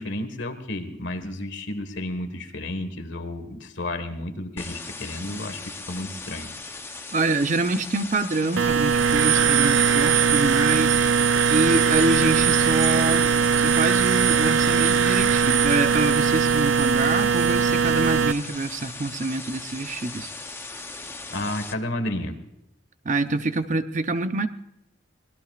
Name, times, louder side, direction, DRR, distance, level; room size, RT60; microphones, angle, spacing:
voice 1, 0.0-6.5 21.3-22.4, left 1 dB, 70° left, 8 dB, 1.6 m, -32 dB
sound 1, 4.6-21.7, left 3 dB, 10° left, 0.8 m, -38 dB
voice 2, 7.1-11.0 11.5-20.3 23.0-24.5, right 2 dB, 40° right, 9 dB, 0.7 m, -26 dB
sound 2, 8.6-18.3, right 6 dB, 90° right, 0.6 m, -20 dB
24.0 x 19.5 x 2.5 m, 0.85 s
head